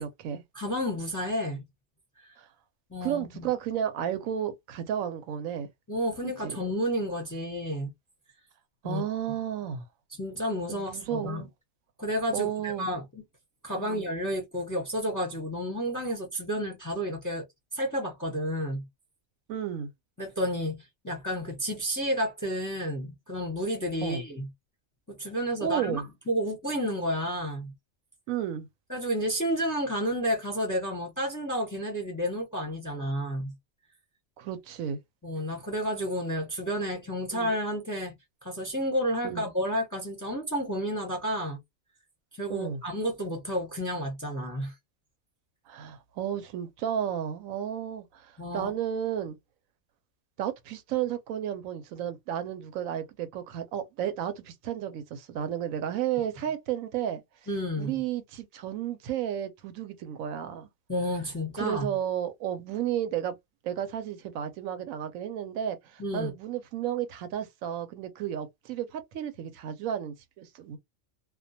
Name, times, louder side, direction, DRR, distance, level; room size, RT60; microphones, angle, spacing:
voice 1, 0.0-0.4 2.4-2.5 3.0-5.7 6.2-6.6 8.8-9.8 10.7-11.5 12.3-12.9 13.7-14.1 19.5-19.9 24.0-24.2 25.6-26.1 28.3-28.7 34.4-35.0 37.3-37.5 39.2-39.5 42.5-42.8 45.7-49.4 50.4-57.2 57.8-60.7 61.5-63.4 63.6-70.8, right 9 dB, 80° right, 1.0 m, -33 dB
voice 2, 0.5-1.6 2.2-2.3 2.9-3.5 5.9-7.9 8.8-9.0 10.2-11.5 12.0-13.2 13.6-17.4 17.7-18.8 20.2-24.5 25.1-27.7 28.9-33.5 35.2-38.2 38.4-41.6 42.4-44.7 48.4-48.7 57.5-58.0 60.9-61.9 66.0-66.3, equal, 20° left, 0.6 m, -31 dB
2.3 x 2.2 x 2.6 m
omnidirectional pair, 1.4 m